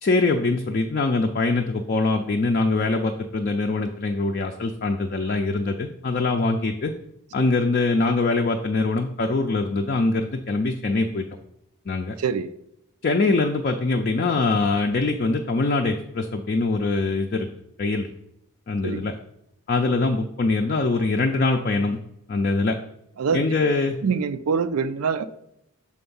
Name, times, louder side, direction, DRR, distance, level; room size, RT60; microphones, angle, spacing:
voice 1, 0.0-6.9 7.3-11.2 11.9-12.1 13.0-17.5 17.8-18.1 18.7-19.2 19.7-22.0 22.3-22.8 23.3-24.0, left 3 dB, 40° left, 3 dB, 0.4 m, -23 dB
voice 2, 12.2-12.5 18.8-19.1 23.2-23.4 24.0-25.3, right 6 dB, 90° right, 13 dB, 0.4 m, -24 dB
6.4 x 3.4 x 5.4 m, 0.79 s
head